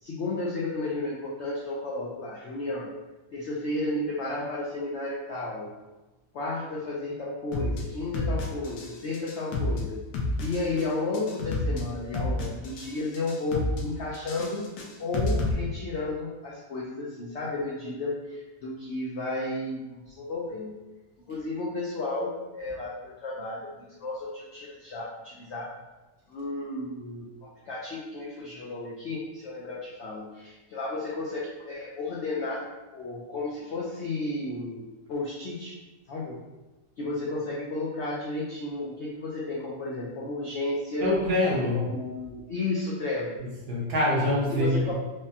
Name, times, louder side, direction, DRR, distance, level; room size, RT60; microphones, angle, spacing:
voice 1, 0.0-2.9 3.3-5.7 6.3-10.0 10.4-14.7 15.0-20.8 21.3-25.7 26.3-35.8 36.1-36.4 37.0-41.1 41.7-43.3 44.5-44.9, left 2 dB, 70° left, -5 dB, 0.6 m, -33 dB
sound 1, 7.5-7.8 8.1-8.9 9.1-9.8 10.1-10.8 11.1-11.8 12.1-12.9 13.1-13.8 14.1-15.5, left 2 dB, 85° left, 1.3 m, -29 dB
voice 2, 41.0-41.8 43.7-44.9, left 1 dB, 70° right, -5 dB, 1.4 m, -24 dB
4.7 x 2.1 x 2.7 m, 1.1 s
omnidirectional pair, 1.8 m